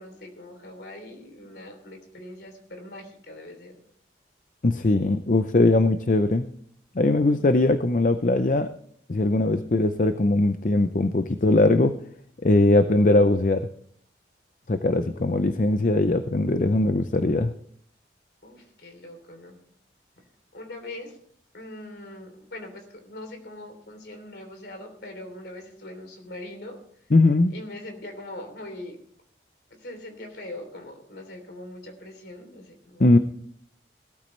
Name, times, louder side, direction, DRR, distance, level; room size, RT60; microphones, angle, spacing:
voice 1, 0.0-3.8 18.4-19.6 20.5-21.2 21.5-26.8 27.5-29.0 29.8-33.0, left 1 dB, 65° left, 5 dB, 3.2 m, -41 dB
voice 2, 4.6-6.5 7.0-8.7 9.1-12.0 12.4-13.7 14.7-17.5 27.1-27.5 33.0-33.2, left 2 dB, 45° left, 10 dB, 0.5 m, -20 dB
18.0 x 13.0 x 3.3 m, 0.62 s
head